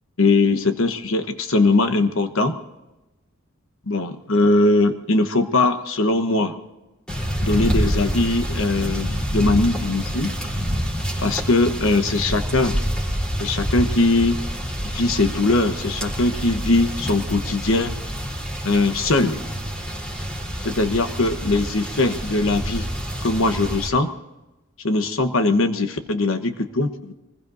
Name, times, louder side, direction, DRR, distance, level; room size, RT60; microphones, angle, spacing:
voice 1, 0.2-2.6 3.9-6.5 7.4-10.3 11.2-12.8 13.4-14.4 14.9-18.0 18.6-19.4 20.6-22.9 23.2-24.1 24.8-27.2, left 2 dB, 80° left, 9 dB, 1.2 m, -20 dB
sound 1, 7.1-23.9, equal, 5° left, 3.6 m, -27 dB
24.0 x 20.5 x 2.7 m, 1.0 s
head